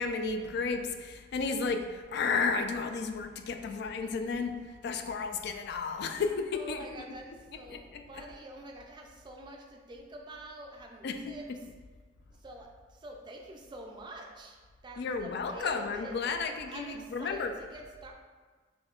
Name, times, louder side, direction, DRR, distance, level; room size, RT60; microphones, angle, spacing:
voice 1, 0.0-6.9 7.7-8.2 11.0-11.3 15.0-17.5, left 4 dB, 60° left, 6 dB, 0.3 m, -33 dB
voice 2, 6.5-7.8 8.1-11.5 12.4-14.6 14.8-18.1, right 1 dB, 25° right, 0 dB, 0.4 m, -47 dB
5.5 x 2.7 x 2.4 m, 1.4 s
head